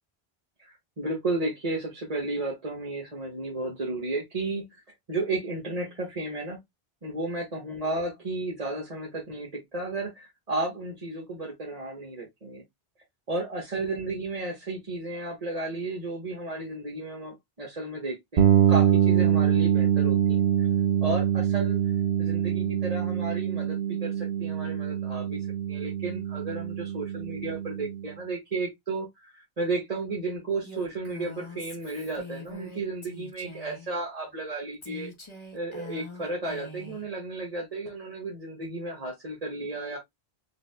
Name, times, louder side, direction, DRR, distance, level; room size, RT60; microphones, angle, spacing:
voice 1, 0.6-4.7 5.1-6.6 7.0-12.6 13.3-20.7 21.0-21.8 22.2-35.1 35.5-40.0, right 2 dB, 35° right, 1.2 m, -33 dB
sound 1, 18.4-28.1, right 9 dB, 80° right, 0.9 m, -24 dB
Female speech woman speaking, 30.6-33.9 34.8-37.1, left 3 dB, 30° left, 1.0 m, -43 dB
4.7 x 2.6 x 2.2 m
omnidirectional pair, 1.1 m